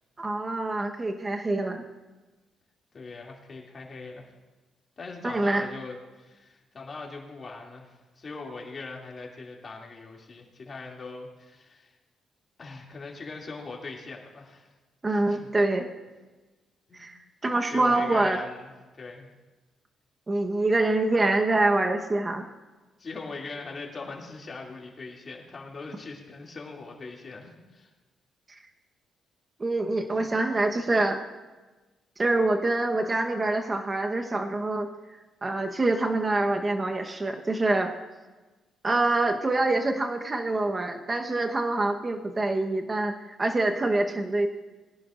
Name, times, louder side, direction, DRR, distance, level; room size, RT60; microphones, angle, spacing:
voice 1, 0.2-1.8 5.2-5.6 15.0-15.9 17.0-18.4 20.3-22.4 29.6-31.2 32.2-34.9 35.4-37.9 38.8-44.5, right 2 dB, 25° right, 4 dB, 1.2 m, -25 dB
voice 2, 2.9-4.3 5.0-11.9 12.6-14.7 15.1-15.5 16.9-17.1 17.7-19.3 23.0-27.9, left 3 dB, 40° left, -1 dB, 2.7 m, -41 dB
21.0 x 11.0 x 2.6 m, 1.2 s
cardioid pair, 90°, 0 cm